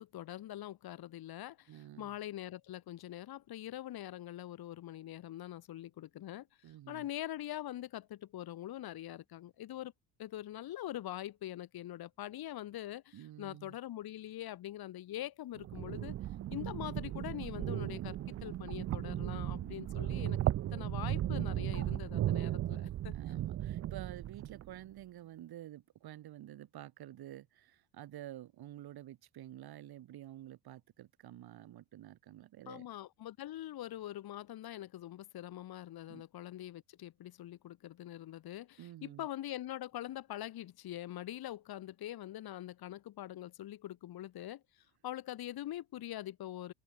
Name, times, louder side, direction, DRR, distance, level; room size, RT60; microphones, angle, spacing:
voice 1, 0.0-1.7 2.0-6.5 6.9-9.9 10.2-16.2 16.5-18.2 18.4-20.4 20.7-23.2 32.7-44.6 45.0-46.7, left 13 dB, 55° left, 3.4 m, -43 dB
voice 2, 1.7-2.2 6.6-7.1 13.1-13.8 22.5-32.9 36.1-36.2 38.8-39.3, right 13 dB, 60° right, 5.0 m, -50 dB
sound 1, 15.6-24.8, right 13 dB, 35° right, 0.5 m, -36 dB
supercardioid pair, 80°, 43 cm